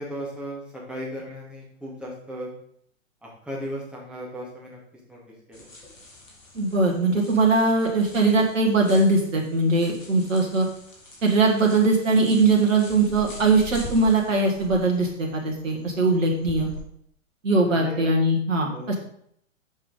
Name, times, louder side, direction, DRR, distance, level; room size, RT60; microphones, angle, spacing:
voice 1, 0.0-2.5 3.2-4.8 5.1-5.2 5.5-5.7 15.9-16.3 17.6-18.0 18.7-19.0, equal, 5° right, -4 dB, 2.6 m, -36 dB
sound 1, 5.5-16.8, equal, 75° left, 2.5 m, -44 dB
voice 2, 6.6-10.7 11.2-16.7 17.4-19.0, right 3 dB, 75° right, 0 dB, 1.6 m, -21 dB
7.4 x 5.2 x 5.1 m, 0.68 s
figure-of-eight pair, 110°, 39 cm